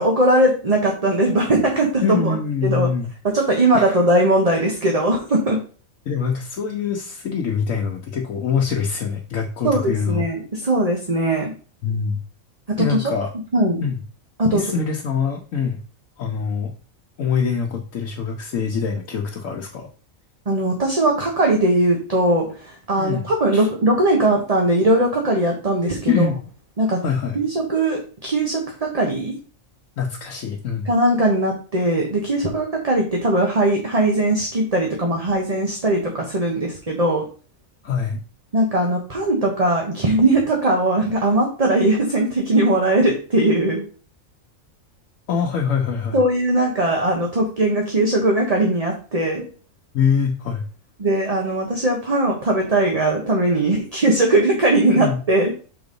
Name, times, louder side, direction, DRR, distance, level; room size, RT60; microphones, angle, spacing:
voice 1, 0.0-2.4 2.6-2.9 3.3-5.6 9.6-11.5 12.7-13.0 13.5-13.8 14.4-14.6 20.5-26.3 26.8-27.0 27.3-29.4 30.8-37.3 38.5-43.8 46.1-49.4 51.0-55.5, right 1 dB, 30° right, 1 dB, 1.1 m, -19 dB
voice 2, 2.0-3.1 3.7-3.9 6.1-10.3 11.8-12.2 12.8-13.3 13.8-14.0 14.5-15.8 16.2-16.7 17.2-19.9 23.0-23.3 23.5-23.7 26.1-26.4 27.0-27.4 30.0-30.9 37.8-38.2 45.3-46.2 49.9-50.6 55.0-55.2, left 6 dB, 75° left, 0 dB, 1.3 m, -24 dB
6.0 x 3.9 x 5.3 m, 0.38 s
omnidirectional pair, 1.4 m